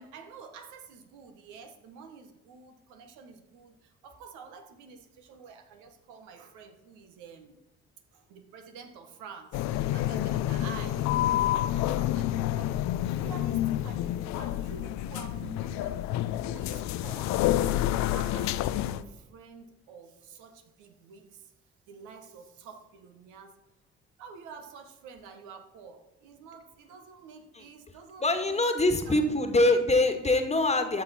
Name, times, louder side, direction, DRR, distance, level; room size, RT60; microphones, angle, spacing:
voice 1, 0.0-7.6 8.1-16.1 16.5-17.4 18.0-18.7 18.9-21.5 21.9-23.6 24.2-29.5 29.8-29.9, right 5 dB, 65° right, 6 dB, 1.2 m, -49 dB
sound 1, 9.5-19.0, left 13 dB, 60° left, 0.6 m, -28 dB
voice 2, 28.2-31.0, left 2 dB, 20° left, 6 dB, 1.6 m, -24 dB
13.0 x 7.0 x 4.2 m, 0.94 s
figure-of-eight pair, 45°, 32 cm